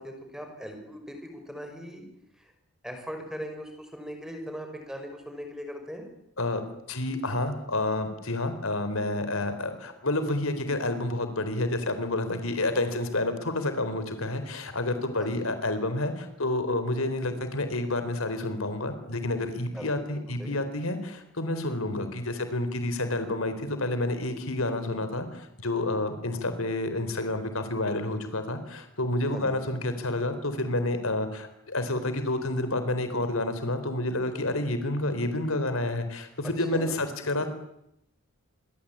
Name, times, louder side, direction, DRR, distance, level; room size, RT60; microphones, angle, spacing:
voice 1, 0.0-2.1 2.4-2.5 2.8-6.1 15.2-15.5 19.7-20.5 29.3-29.8 36.7-37.0, equal, 5° right, 5 dB, 5.8 m, -40 dB
voice 2, 6.9-37.5, left 2 dB, 80° left, 9 dB, 4.2 m, -29 dB
27.0 x 23.0 x 8.9 m, 0.79 s
head